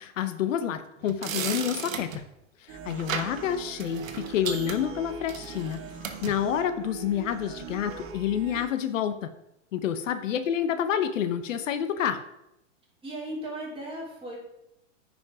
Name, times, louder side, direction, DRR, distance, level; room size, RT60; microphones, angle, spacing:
voice 1, 0.0-2.2 2.6-5.8 6.2-9.3 9.7-12.2, left 9 dB, 70° left, 11 dB, 0.9 m, -28 dB
sound 1, 1.0-2.2 2.9-3.4 3.8-6.4 7.3-7.5 7.9-8.1, right 6 dB, 80° right, 1.3 m, -36 dB
sound 2, 2.7-8.7, right 6 dB, 35° right, 1.3 m, -42 dB
voice 2, 13.0-14.4, right 1 dB, 15° right, -5 dB, 3.8 m, -36 dB
9.3 x 5.3 x 4.8 m, 0.84 s
hypercardioid pair, 125°, 39 cm